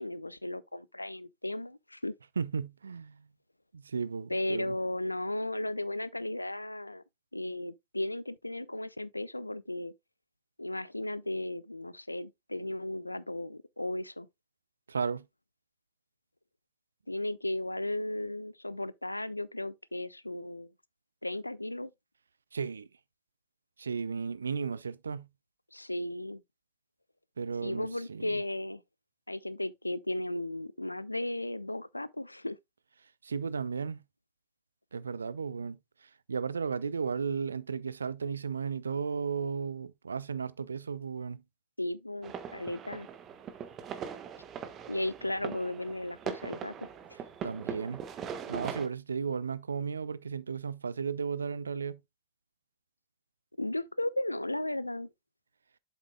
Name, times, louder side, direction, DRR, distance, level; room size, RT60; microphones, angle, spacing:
voice 1, 0.0-2.1 4.3-7.0 7.3-9.9 10.6-14.3 17.1-20.7 21.2-21.9 25.7-26.4 27.6-28.8 29.3-32.6 41.8-43.1 44.9-46.9 53.6-55.1, left 1 dB, 85° left, 0.4 m, -35 dB
voice 2, 2.4-3.3 3.7-4.7 14.9-15.2 22.5-22.9 23.8-25.3 27.4-28.4 33.2-34.0 34.9-41.4 47.4-48.0 48.5-52.0, right 5 dB, 75° right, 0.4 m, -34 dB
sound 1, 42.2-48.9, right 7 dB, 30° right, 1.2 m, -41 dB
8.1 x 7.3 x 2.2 m
figure-of-eight pair, 85°, 0 cm